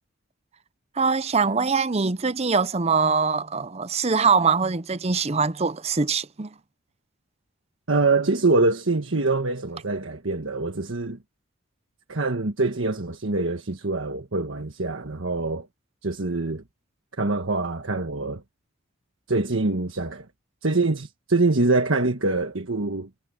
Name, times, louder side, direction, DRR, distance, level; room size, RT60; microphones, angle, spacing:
voice 1, 1.0-6.5, right 5 dB, 30° right, 0.6 m, -23 dB
voice 2, 7.9-11.2 12.1-15.7 16.0-16.6 17.2-18.4 19.3-20.2 20.6-23.1, right 3 dB, 65° right, 1.5 m, -24 dB
head